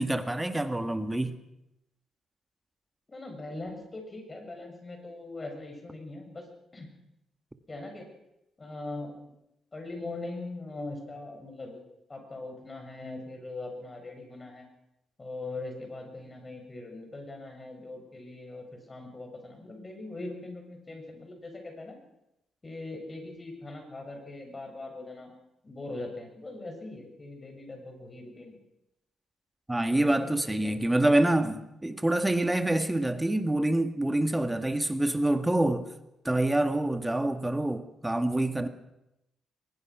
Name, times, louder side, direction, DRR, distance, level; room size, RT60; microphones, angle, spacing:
voice 1, 0.0-1.4 29.7-35.9 36.3-38.7, right 1 dB, 10° right, 1.7 m, -26 dB
voice 2, 3.1-6.5 6.7-6.9 7.7-8.1 8.6-9.2 9.7-11.8 12.1-14.7 15.2-22.0 22.6-25.3 25.6-28.6 29.9-30.8, left 2 dB, 25° left, 7.1 m, -41 dB
22.0 x 20.5 x 6.1 m
cardioid pair, 90°, 0 cm